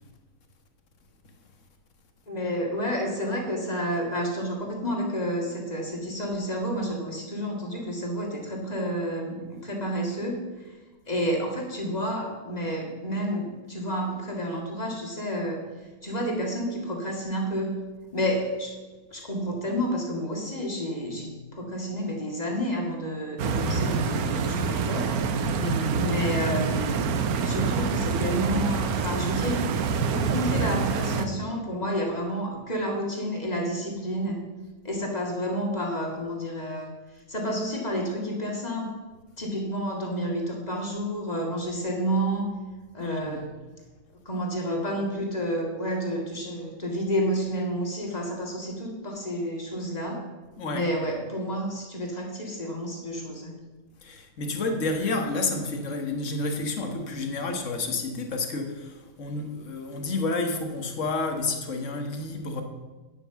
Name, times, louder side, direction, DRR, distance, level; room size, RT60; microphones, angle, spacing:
voice 1, 2.3-10.7 11.1-15.6 16.0-17.8 18.1-18.8 19.1-25.2 26.0-27.1 27.4-34.5 34.8-36.9 37.3-38.9 39.4-42.5 42.9-43.5 44.3-50.3 50.7-53.5, equal, 30° left, 0 dB, 2.1 m, -30 dB
Stream, 23.4-31.2, right 5 dB, 90° right, 1.3 m, -26 dB
voice 2, 25.6-26.1 43.0-43.4 50.6-50.8 54.0-62.6, left 3 dB, 60° left, 4 dB, 1.7 m, -30 dB
9.7 x 6.9 x 7.0 m, 1.3 s
omnidirectional pair, 1.5 m